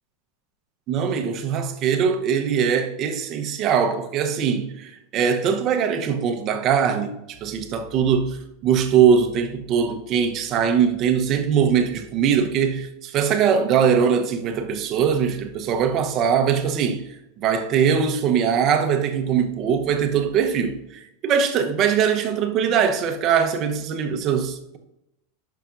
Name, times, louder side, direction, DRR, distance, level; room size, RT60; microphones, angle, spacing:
voice 1, 0.9-17.1 17.4-24.8, right 7 dB, 40° right, 0.9 m, -21 dB
11.0 x 5.9 x 2.6 m
supercardioid pair, 130°, 0 cm